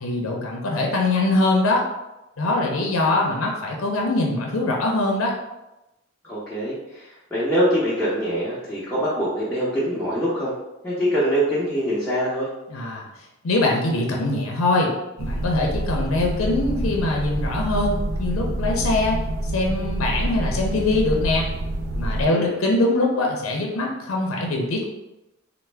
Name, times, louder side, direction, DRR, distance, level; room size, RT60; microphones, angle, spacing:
voice 1, 0.0-1.8 2.4-5.3 12.7-13.1 13.4-14.9 15.2-19.2 19.4-21.5 22.0-24.9, left 2 dB, 80° left, 0 dB, 0.6 m, -23 dB
voice 2, 6.2-10.5 10.8-12.5 22.2-22.6, equal, 5° left, -11 dB, 0.7 m, -24 dB
sound 1, 15.2-22.2, right 1 dB, 80° right, 0.4 m, -27 dB
3.3 x 2.0 x 3.3 m, 0.96 s
head